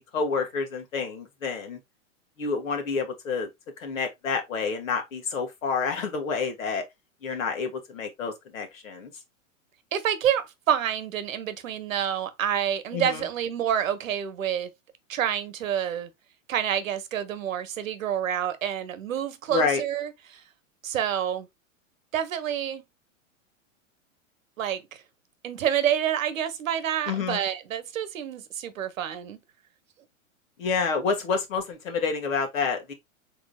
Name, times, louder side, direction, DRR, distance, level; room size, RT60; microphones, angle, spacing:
voice 1, 0.1-1.8 2.4-3.5 3.8-6.8 7.2-9.1 12.9-13.2 19.5-19.8 27.1-27.4 30.6-32.9, left 5 dB, 80° left, 1.6 m, -28 dB
voice 2, 9.9-14.7 15.1-16.1 16.5-20.4 20.8-21.5 22.1-22.8 24.6-25.0 25.4-29.4, right 9 dB, 80° right, 1.0 m, -28 dB
4.8 x 3.8 x 2.2 m
hypercardioid pair, 115°, 39 cm